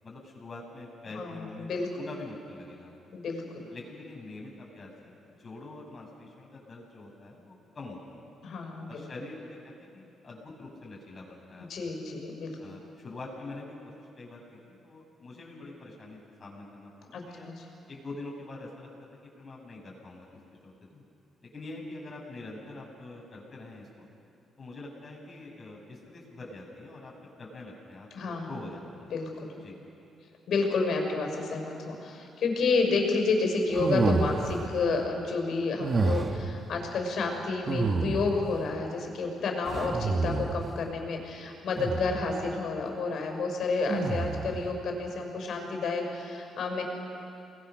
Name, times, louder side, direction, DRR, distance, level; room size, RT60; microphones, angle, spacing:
voice 1, 0.0-1.7 2.0-2.9 3.7-8.2 8.9-11.7 12.6-17.5 17.9-21.0 21.4-24.1 24.6-27.1 27.4-29.1 29.6-29.8 39.6-39.8, left 2 dB, 35° left, -2 dB, 7.3 m, -45 dB
voice 2, 3.1-3.7 8.4-9.1 11.7-12.6 17.1-17.7 28.1-28.5 29.1-29.5 30.5-46.8, left 3 dB, 65° left, 2 dB, 6.2 m, -30 dB
sound 1, 33.7-34.7 35.8-36.5 37.7-38.5 39.7-40.7 41.7-42.3 43.9-44.6, right 3 dB, 35° right, 1.6 m, -29 dB
29.0 x 21.0 x 6.6 m, 2.6 s
cardioid pair, 90°, 0 cm